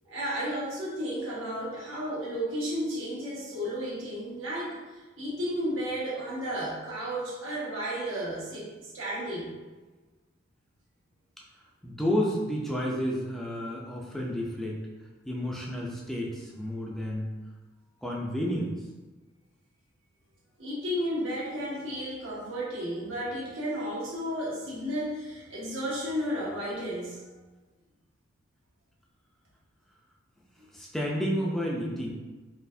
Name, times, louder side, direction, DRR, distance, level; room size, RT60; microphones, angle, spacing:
voice 1, 0.0-9.5 20.6-27.3, equal, 85° right, -6 dB, 1.2 m, -33 dB
voice 2, 11.8-14.8 15.2-17.3 18.0-18.8 30.7-32.1, equal, ahead, -3 dB, 0.5 m, -31 dB
4.1 x 2.5 x 2.7 m, 1.2 s
head